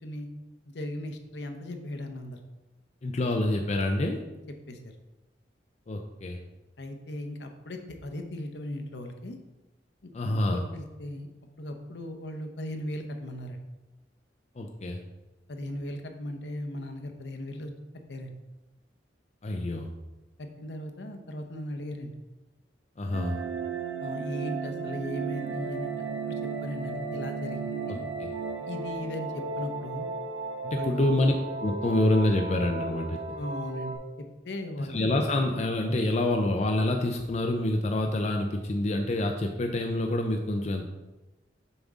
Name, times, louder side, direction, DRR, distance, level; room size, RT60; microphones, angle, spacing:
voice 1, 0.7-2.4 4.7-4.9 6.8-9.4 10.0-11.3 11.6-13.6 15.5-17.7 18.1-18.3 20.4-22.1 24.0-26.3 26.6-28.0 28.7-30.1 30.7-31.0 33.4-33.9 34.4-35.0, left 1 dB, 70° left, 5 dB, 0.8 m, -37 dB
voice 2, 3.0-4.2 5.9-6.4 10.1-10.6 14.6-15.0 19.4-19.9 23.0-23.4 27.9-28.3 30.6-31.3 31.6-33.2 34.8-40.9, left 1 dB, 40° left, 3 dB, 0.5 m, -27 dB
sound 1, 23.1-34.0, right 4 dB, 85° right, 1.2 m, -34 dB
7.0 x 5.2 x 3.6 m, 1.1 s
head